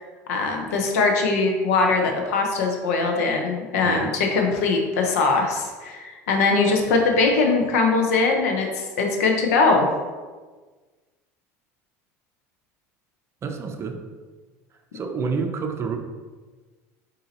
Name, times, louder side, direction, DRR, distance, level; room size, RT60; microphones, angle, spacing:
voice 1, 0.3-9.9, left 3 dB, 80° left, 2 dB, 0.7 m, -21 dB
voice 2, 13.4-14.0 14.9-16.0, right 5 dB, 35° right, 4 dB, 0.5 m, -28 dB
3.9 x 2.7 x 4.0 m, 1.4 s
hypercardioid pair, 85°, 8 cm